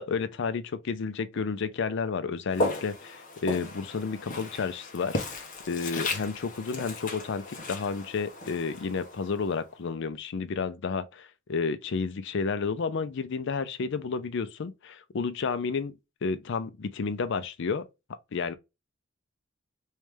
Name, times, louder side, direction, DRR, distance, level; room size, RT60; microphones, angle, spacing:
voice 1, 0.0-17.9 18.3-18.5, left 5 dB, 60° left, 0.5 m, -31 dB
Walk footsteps, 2.5-9.6, left 2 dB, 40° left, 0.9 m, -35 dB
3.2 x 3.1 x 3.4 m
head